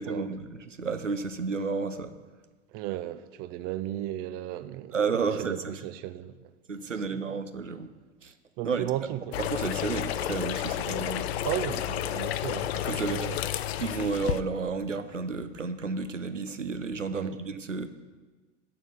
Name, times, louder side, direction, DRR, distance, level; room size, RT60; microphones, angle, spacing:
voice 1, 0.0-2.1 4.9-5.6 6.7-7.9 8.2-8.3 8.6-8.9 9.4-11.3 12.8-13.2 13.8-17.9, right 4 dB, 90° right, 0.6 m, -31 dB
voice 2, 2.7-6.5 6.8-7.2 8.6-9.4 11.4-13.4 17.1-17.4, right 13 dB, 25° right, 0.4 m, -35 dB
sound 1, 9.3-14.4, left 11 dB, 60° left, 0.5 m, -31 dB
7.4 x 6.3 x 7.0 m
figure-of-eight pair, 85°, 37 cm